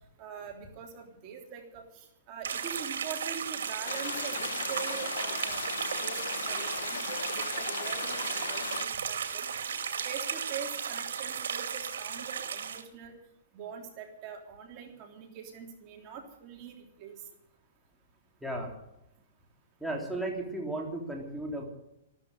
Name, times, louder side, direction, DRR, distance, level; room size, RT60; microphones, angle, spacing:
voice 1, 0.2-5.6 5.9-9.7 10.0-13.2 13.5-17.2, right 7 dB, 35° right, 3 dB, 3.2 m, -43 dB
sound 1, 2.4-12.8, right 7 dB, 85° right, 2.4 m, -35 dB
sound 2, 3.8-8.9, left 8 dB, 85° left, 0.9 m, -38 dB
voice 2, 18.4-18.7 19.8-21.7, right 1 dB, ahead, -1 dB, 3.3 m, -34 dB
14.0 x 13.5 x 6.6 m, 0.82 s
hypercardioid pair, 150°, 0 cm